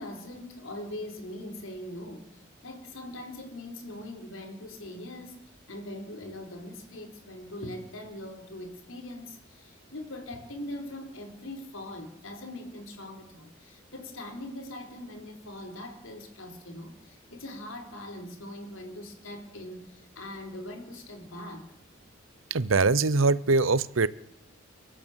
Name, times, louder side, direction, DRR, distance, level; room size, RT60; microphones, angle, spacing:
voice 1, 0.0-5.4 5.7-21.7, left 1 dB, 75° left, 4.4 m, -41 dB
voice 2, 22.5-24.1, right 3 dB, 75° right, 0.8 m, -23 dB
29.0 x 12.5 x 8.2 m
head